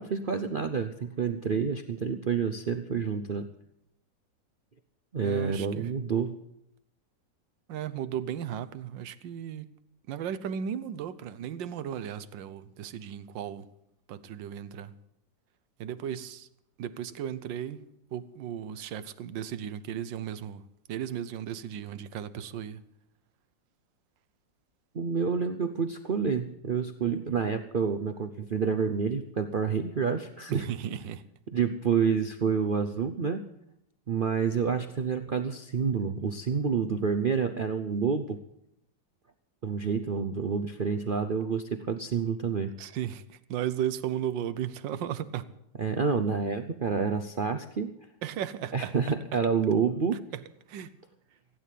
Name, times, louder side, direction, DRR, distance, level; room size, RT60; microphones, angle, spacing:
voice 1, 0.0-3.5 5.1-6.3 24.9-30.7 31.5-33.4 34.1-38.4 39.6-42.7 45.8-47.9 48.7-50.2, right 6 dB, 70° right, 0.5 m, -28 dB
voice 2, 5.2-5.9 7.7-9.7 10.1-13.7 14.1-14.9 15.8-16.5 16.8-17.8 18.1-20.6 20.9-22.8 30.5-31.2 42.8-45.5 48.2-49.4 50.3-50.4 50.7-50.9, right 9 dB, 85° right, 1.5 m, -35 dB
16.0 x 9.2 x 8.3 m
omnidirectional pair, 2.0 m